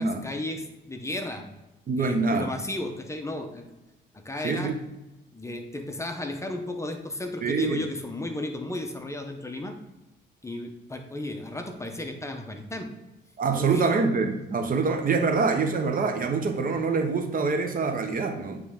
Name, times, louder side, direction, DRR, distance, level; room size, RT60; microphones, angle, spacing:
voice 1, 0.0-1.5 2.0-3.6 4.1-4.7 5.3-9.7 10.4-12.9 13.5-14.0, left 1 dB, 15° left, 4 dB, 0.8 m, -34 dB
voice 2, 1.9-2.5 4.4-4.7 7.4-7.8 13.4-18.6, right 4 dB, 45° right, 5 dB, 0.9 m, -25 dB
9.1 x 3.3 x 3.6 m, 0.97 s
cardioid pair, 90°, 20 cm